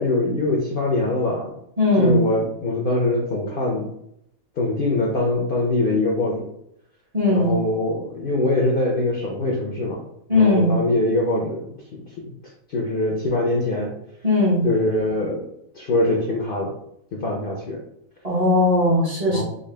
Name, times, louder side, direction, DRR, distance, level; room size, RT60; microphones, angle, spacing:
voice 1, 0.0-1.5 2.0-3.9 4.6-6.5 7.3-10.0 10.3-12.0 12.7-13.9 14.6-15.4 15.7-16.7 17.1-17.8 19.3-19.4, left 2 dB, 55° left, -1 dB, 0.6 m, -23 dB
voice 2, 1.8-2.2 7.1-7.5 10.3-10.7 14.2-14.6 18.2-19.4, left 2 dB, 35° right, -4 dB, 0.8 m, -18 dB
3.8 x 2.2 x 3.2 m, 0.75 s
omnidirectional pair, 1.4 m